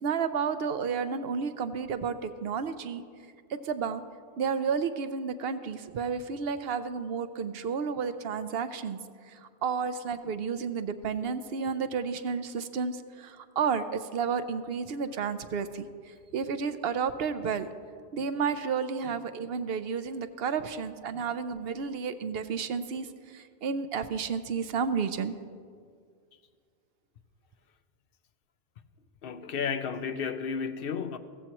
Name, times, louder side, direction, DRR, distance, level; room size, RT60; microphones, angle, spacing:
voice 1, 0.0-3.0 3.5-4.0 4.4-9.0 9.3-15.9 16.3-17.7 18.1-23.1 23.3-25.3, right 6 dB, 70° right, 11 dB, 0.8 m, -31 dB
voice 2, 29.2-31.2, left 6 dB, 65° left, 10 dB, 0.8 m, -33 dB
15.5 x 14.5 x 3.0 m, 2.1 s
omnidirectional pair, 1.1 m